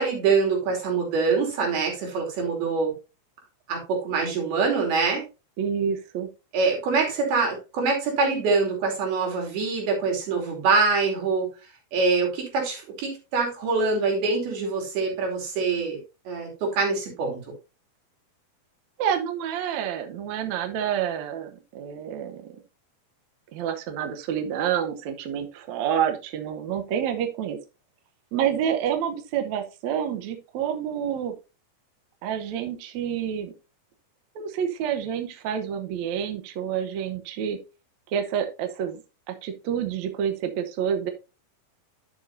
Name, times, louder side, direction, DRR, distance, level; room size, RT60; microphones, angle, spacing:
voice 1, 0.0-2.9 3.7-5.3 6.5-11.5 11.9-16.0 16.3-17.4, right 4 dB, 90° right, 0 dB, 4.6 m, -24 dB
voice 2, 5.6-6.3 19.0-22.5 23.5-27.6 28.3-31.3 32.2-33.5 34.4-37.6 38.1-39.0 39.3-41.1, right 8 dB, 70° right, 6 dB, 1.8 m, -28 dB
11.0 x 6.6 x 2.7 m, 0.29 s
omnidirectional pair, 4.2 m